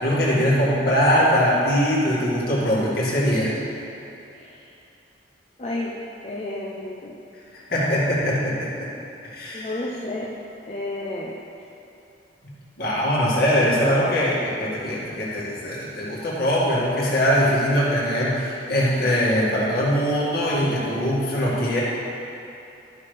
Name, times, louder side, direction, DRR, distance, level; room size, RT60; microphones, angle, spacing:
voice 1, 0.0-3.5 7.7-8.9 9.3-9.9 12.8-21.8, equal, 55° left, -7 dB, 2.2 m, -22 dB
voice 2, 5.6-7.2 9.5-10.3 10.7-11.4 13.8-14.0, left 1 dB, 35° left, -4 dB, 0.6 m, -31 dB
13.5 x 6.3 x 3.4 m, 2.7 s
head